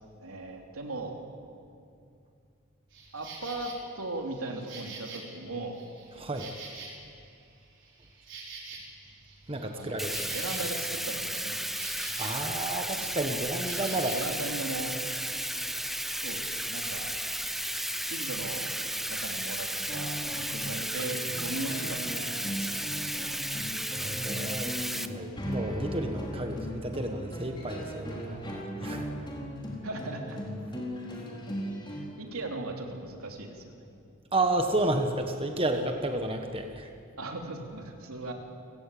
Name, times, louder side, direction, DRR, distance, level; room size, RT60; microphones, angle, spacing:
voice 1, 0.2-1.2 3.1-5.8 9.7-11.7 13.9-14.9 16.2-17.1 18.1-18.7 19.1-22.5 22.9-23.4 29.8-30.4 30.7-30.8 32.2-33.8 37.2-38.3, right 2 dB, 80° right, 2 dB, 3.3 m, -38 dB
Insect, 2.9-3.8 4.3-7.3 7.6-12.5 12.8-14.3, right 4 dB, 55° right, 4.9 m, -46 dB
voice 2, 6.2-6.5 9.5-10.3 12.2-14.2 24.0-29.1 34.3-36.9, right 2 dB, 25° right, 5 dB, 1.3 m, -31 dB
Bathtub (filling or washing), 10.0-25.1, right 1 dB, ahead, 0.6 m, -34 dB
sound 1, 19.8-32.0, equal, 20° left, 4.1 m, -38 dB
29.5 x 17.5 x 8.6 m, 2.5 s
head